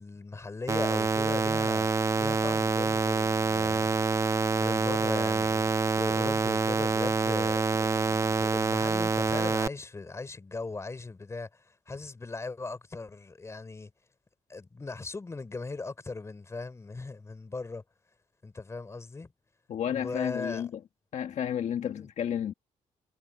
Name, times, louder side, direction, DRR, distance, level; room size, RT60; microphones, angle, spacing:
voice 1, 0.0-4.0 4.6-5.7 6.0-13.9 14.5-17.8 18.4-19.3 19.9-20.6 21.8-22.1, left 3 dB, 20° left, 3.6 m, -38 dB
sound 1, 0.7-9.7, right 4 dB, 20° right, 0.7 m, -26 dB
voice 2, 19.7-20.7 21.1-22.5, left 9 dB, 60° left, 1.6 m, -31 dB
cardioid pair, 135°, 14 cm